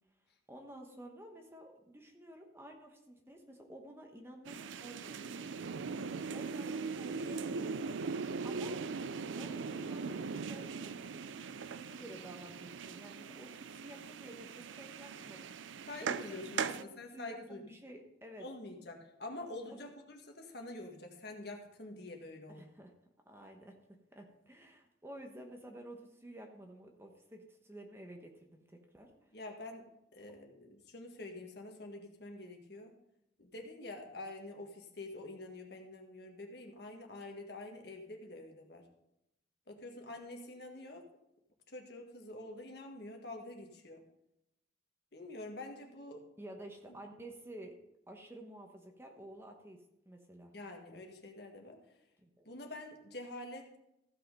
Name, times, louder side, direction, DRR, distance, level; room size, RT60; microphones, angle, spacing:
voice 1, 0.5-5.5 6.3-7.8 8.4-8.8 9.4-11.1 11.6-15.5 16.0-16.9 17.1-18.5 19.7-19.8 22.5-22.9 23.3-29.1 46.4-47.8 48.1-50.5 52.2-52.5, right 1 dB, 15° right, 3 dB, 1.1 m, -51 dB
sound 1, 4.4-16.8, right 5 dB, 90° right, 0.5 m, -40 dB
voice 2, 15.9-16.7 17.0-17.6 18.4-22.6 29.3-29.8 30.1-32.9 33.4-38.8 39.7-41.0 41.7-44.0 45.1-46.3 50.5-51.8 52.5-53.7, left 2 dB, 60° left, 2 dB, 1.8 m, -46 dB
15.0 x 5.8 x 5.4 m, 0.84 s
head